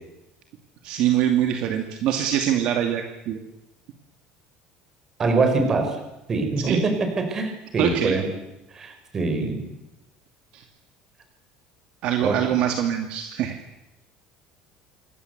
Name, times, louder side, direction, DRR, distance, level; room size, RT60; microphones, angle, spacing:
voice 1, 0.8-3.4 6.7-6.8 7.8-8.1 10.5-10.6 12.0-13.6, right 10 dB, 50° right, 5 dB, 2.5 m, -23 dB
voice 2, 5.2-6.0 6.3-8.3 8.7-9.7 12.2-12.6, right 3 dB, 20° right, 6 dB, 5.2 m, -24 dB
27.0 x 24.0 x 8.2 m, 0.96 s
cardioid pair, 180°, 2 cm